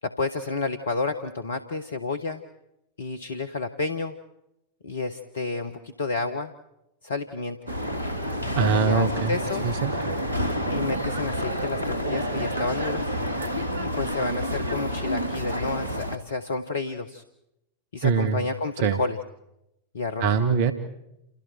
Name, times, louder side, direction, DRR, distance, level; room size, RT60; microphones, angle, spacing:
voice 1, 0.0-2.4 3.0-4.1 4.8-6.5 7.0-7.6 8.7-9.7 10.7-13.0 14.0-17.2 17.9-19.2 19.9-20.3, left 3 dB, 65° left, 11 dB, 1.3 m, -30 dB
sound 1, 7.7-16.2, equal, 80° right, 1.9 m, -29 dB
voice 2, 8.5-9.4 9.6-9.9 18.0-18.4 18.8-19.0 20.2-20.7, right 6 dB, 50° right, 10 dB, 1.7 m, -22 dB
29.0 x 29.0 x 4.5 m, 0.84 s
figure-of-eight pair, 90°, 0 cm